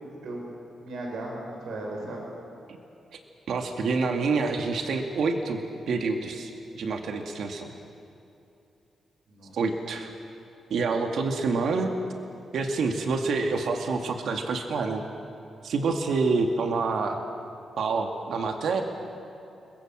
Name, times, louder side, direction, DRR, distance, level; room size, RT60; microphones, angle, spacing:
voice 1, 0.8-2.3 9.3-9.6, right 2 dB, 85° right, -1 dB, 6.2 m, -36 dB
voice 2, 3.5-5.6 5.9-7.7 9.5-10.1 10.7-11.9 12.5-15.0 15.6-17.2 17.8-18.8, right 4 dB, 70° right, 4 dB, 2.2 m, -27 dB
30.0 x 21.5 x 7.5 m, 2.8 s
wide cardioid pair, 135°, 0 cm